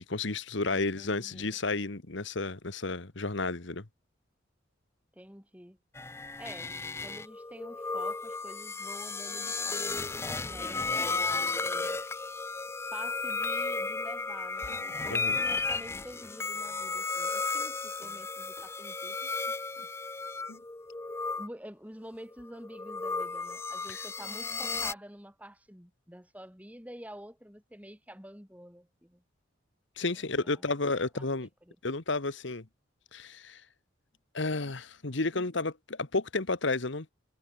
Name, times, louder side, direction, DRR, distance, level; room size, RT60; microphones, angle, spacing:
voice 1, 0.0-3.9 15.1-15.4 20.5-20.6 23.9-24.0 30.0-31.5 31.8-32.7 33.1-33.6 34.3-37.1, left 3 dB, 70° left, 1.4 m, -32 dB
voice 2, 0.7-1.6 5.1-5.8 6.4-12.0 12.9-19.9 21.4-29.2 30.0-30.6 31.0-31.3 31.7-31.8, equal, 5° right, 5.7 m, -48 dB
sound 1, 6.0-21.5 22.3-24.9, left 3 dB, 15° left, 0.4 m, -34 dB
head